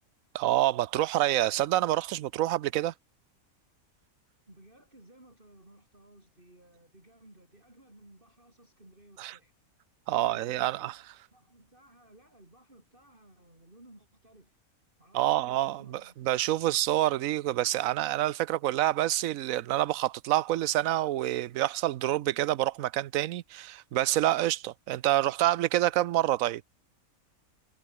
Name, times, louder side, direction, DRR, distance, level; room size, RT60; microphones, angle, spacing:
voice 1, 0.3-2.9 9.2-9.3 10.1-11.0 15.1-26.6, right 14 dB, 75° right, 1.0 m, -27 dB
voice 2, 4.5-9.5 11.3-14.6 15.0-16.1, right 1 dB, 35° right, 6.1 m, -57 dB
omnidirectional pair, 1.5 m